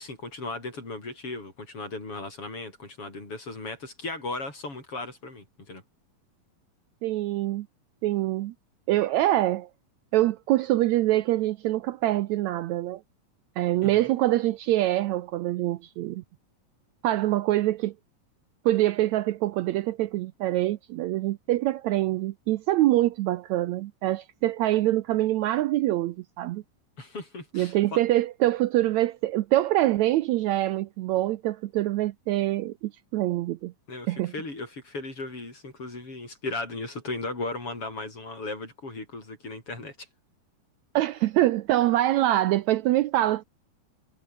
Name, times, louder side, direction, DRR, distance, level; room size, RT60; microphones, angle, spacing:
voice 1, 0.0-5.8 13.8-14.1 27.0-28.0 33.9-40.1, left 2 dB, 40° left, 8.3 m, -36 dB
voice 2, 7.0-7.7 8.0-8.5 8.9-9.7 10.1-13.0 13.6-16.2 17.0-17.9 18.6-26.6 27.5-33.7 34.1-34.3 40.9-43.4, right 15 dB, 90° right, 1.6 m, -25 dB
omnidirectional pair, 4.0 m